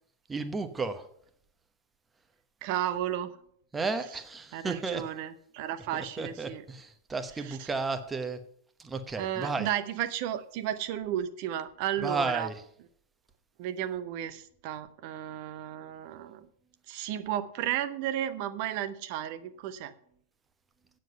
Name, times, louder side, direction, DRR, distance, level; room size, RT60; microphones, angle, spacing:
voice 1, 0.3-1.0 3.7-5.0 5.9-8.4 8.8-9.7 12.0-12.6, right 4 dB, 15° right, 9 dB, 1.0 m, -33 dB
voice 2, 2.6-3.3 4.5-6.6 7.4-7.7 9.2-12.5 13.6-16.5 16.9-19.9, right 11 dB, 45° right, 11 dB, 0.8 m, -33 dB
9.2 x 7.7 x 6.7 m, 0.65 s
figure-of-eight pair, 90°, 0 cm